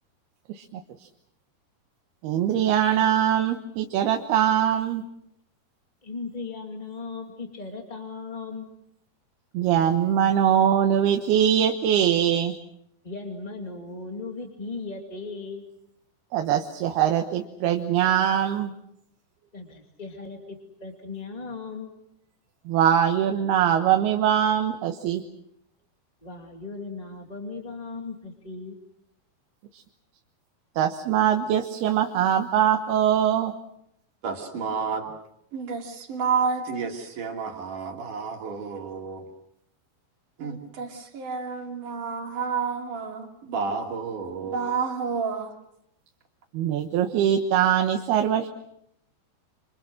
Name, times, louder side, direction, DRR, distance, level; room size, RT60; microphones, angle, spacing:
voice 1, 0.5-1.1 2.2-5.0 9.5-12.6 16.3-18.7 22.7-25.2 29.7-29.8 30.8-33.5 46.5-48.5, right 9 dB, 85° right, 5 dB, 3.2 m, -22 dB
voice 2, 6.0-8.7 13.0-15.6 19.5-21.9 26.2-28.8, left 4 dB, 15° left, 3 dB, 1.5 m, -37 dB
voice 3, 34.2-35.1 35.5-39.3 40.4-45.5, right 5 dB, 55° right, 2 dB, 4.1 m, -30 dB
27.5 x 27.0 x 6.4 m, 0.77 s
omnidirectional pair, 4.4 m